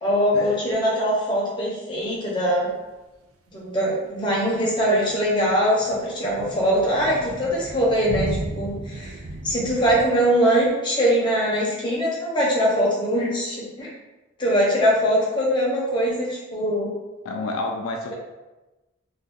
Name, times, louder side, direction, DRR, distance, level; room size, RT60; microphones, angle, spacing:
voice 1, 0.0-2.7 3.5-9.2 9.4-13.9 14.4-16.9, equal, 20° left, -5 dB, 0.8 m, -22 dB
sound 1, 4.6-10.1, right 2 dB, 85° right, 0.4 m, -35 dB
voice 2, 17.2-18.1, left 2 dB, 85° left, 2 dB, 0.4 m, -29 dB
2.7 x 2.6 x 3.6 m, 1.1 s
head